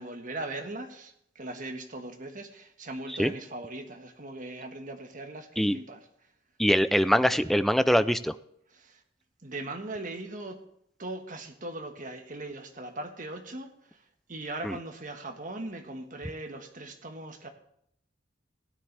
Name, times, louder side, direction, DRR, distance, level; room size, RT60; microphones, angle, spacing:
voice 1, 0.0-6.1 8.7-9.0 9.4-10.6 11.0-14.0 14.3-17.5, right 2 dB, 45° right, 1.5 m, -39 dB
voice 2, 6.6-8.3 14.6-14.8, equal, ahead, 0.4 m, -23 dB
16.0 x 9.9 x 3.4 m
head